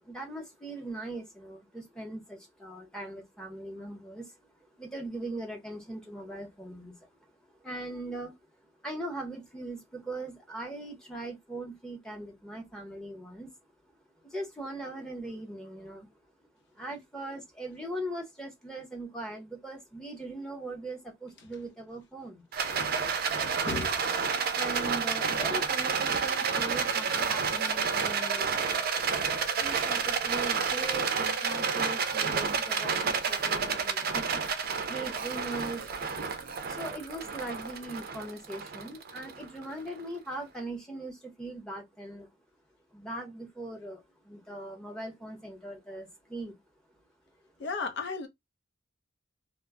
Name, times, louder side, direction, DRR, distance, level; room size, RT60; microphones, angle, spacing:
voice 1, 0.0-4.5 4.8-7.3 7.6-8.3 8.8-13.5 14.3-16.1 16.7-22.4 24.5-28.6 29.4-34.4 34.8-36.0 36.7-42.3 42.9-46.6, right 2 dB, 5° left, 0.8 m, -40 dB
Rattle, 22.5-39.9, right 5 dB, 50° right, 0.5 m, -30 dB
voice 2, 23.3-24.1 47.6-48.3, left 4 dB, 60° left, 0.6 m, -35 dB
2.1 x 2.0 x 3.4 m
head